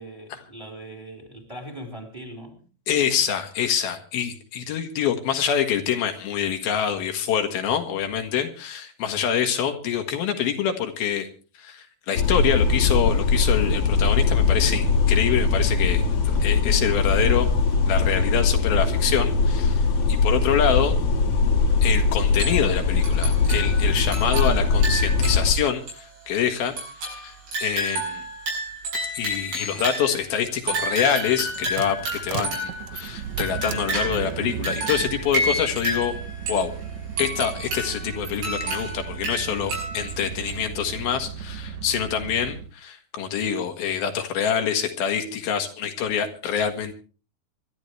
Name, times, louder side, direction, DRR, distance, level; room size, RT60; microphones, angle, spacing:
voice 1, 0.0-2.6, right 1 dB, 10° right, 3.8 m, -40 dB
voice 2, 2.9-11.3 11.6-17.5 17.9-19.8 20.1-21.0 21.8-28.3 29.1-36.2 36.5-36.7 37.2-47.0, left 8 dB, 80° left, 3.4 m, -26 dB
sound 1, 12.1-25.5, left 4 dB, 45° left, 2.6 m, -21 dB
sound 2, 22.4-22.8 23.0-25.6 25.9-26.0 26.8-30.2 30.7-34.4 34.6-36.7 37.2-40.1 40.5-40.6, right 1 dB, 90° right, 9.5 m, -30 dB
sound 3, 31.2-42.7, right 8 dB, 70° right, 1.7 m, -35 dB
26.0 x 12.5 x 3.3 m
omnidirectional pair, 4.3 m